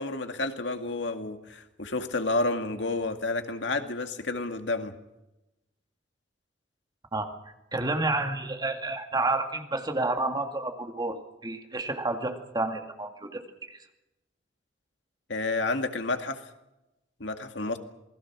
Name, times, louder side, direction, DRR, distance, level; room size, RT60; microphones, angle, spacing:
voice 1, 0.0-4.9 15.3-16.4 17.2-17.8, left 2 dB, 75° left, 6 dB, 2.1 m, -30 dB
voice 2, 7.7-13.8, right 2 dB, 25° right, 4 dB, 2.3 m, -30 dB
27.5 x 20.5 x 6.1 m, 0.95 s
head